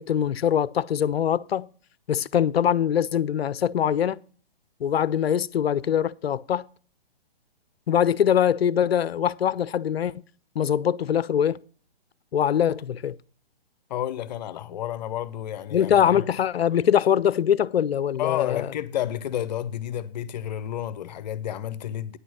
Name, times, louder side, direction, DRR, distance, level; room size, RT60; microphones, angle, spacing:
voice 1, 0.0-1.7 2.1-4.2 4.8-6.6 7.9-10.1 10.6-11.6 12.3-13.2 15.7-18.7, left 9 dB, 75° left, 0.5 m, -23 dB
voice 2, 13.9-16.3 18.2-22.2, left 11 dB, 45° left, 0.8 m, -30 dB
9.6 x 6.1 x 6.2 m
hypercardioid pair, 135°, 31 cm